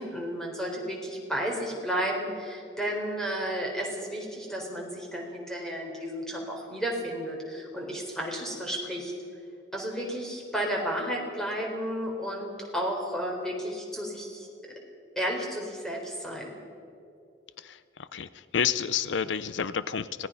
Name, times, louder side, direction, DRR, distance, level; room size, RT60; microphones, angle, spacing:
voice 1, 0.0-9.1 9.7-14.5 15.2-16.6, equal, 5° left, -1 dB, 4.2 m, -32 dB
voice 2, 17.6-20.3, left 7 dB, 85° left, 15 dB, 0.6 m, -30 dB
25.5 x 18.5 x 5.6 m, 2.6 s
head